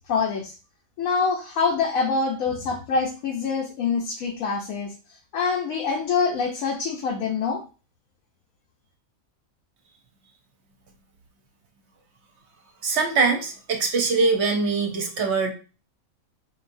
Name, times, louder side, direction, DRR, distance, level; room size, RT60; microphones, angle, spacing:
voice 1, 0.1-0.5 1.0-4.9 5.3-7.6, left 5 dB, 75° left, 0 dB, 1.1 m, -25 dB
voice 2, 12.8-15.5, right 4 dB, 60° right, 4 dB, 0.8 m, -22 dB
4.8 x 2.7 x 2.6 m, 0.34 s
omnidirectional pair, 1.5 m